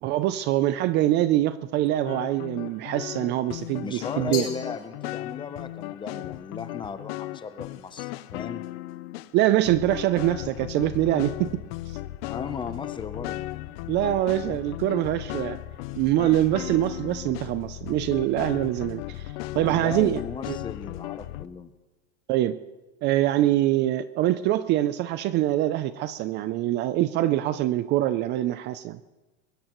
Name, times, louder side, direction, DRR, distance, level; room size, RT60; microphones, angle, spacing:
voice 1, 0.0-4.5 9.3-12.0 13.9-15.6 16.0-20.2 20.5-20.6 22.3-22.6 23.0-29.0, right 14 dB, 35° right, 13 dB, 0.4 m, -24 dB
sound 1, 2.1-9.3 9.6-21.5, left 16 dB, 60° left, 0.7 m, -36 dB
voice 2, 3.8-8.7 12.2-13.5 19.6-21.7, left 6 dB, 15° left, 11 dB, 0.7 m, -36 dB
Glass, 4.3-5.5, left 7 dB, 40° left, 4.8 m, -38 dB
22.5 x 20.0 x 3.0 m, 1.2 s
supercardioid pair, 155°, 33 cm